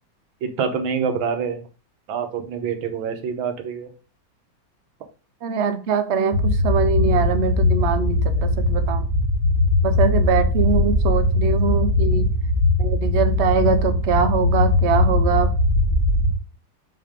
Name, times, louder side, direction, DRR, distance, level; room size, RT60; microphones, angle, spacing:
voice 1, 0.4-1.6 2.1-3.9, right 6 dB, 80° right, 7 dB, 1.7 m, -26 dB
voice 2, 5.4-9.1 9.8-12.3 12.8-15.5, right 5 dB, 60° right, 8 dB, 0.7 m, -23 dB
sound 1, 6.3-16.3, left 1 dB, 20° right, 1.0 m, -20 dB
5.8 x 3.6 x 5.0 m, 0.36 s
omnidirectional pair, 2.1 m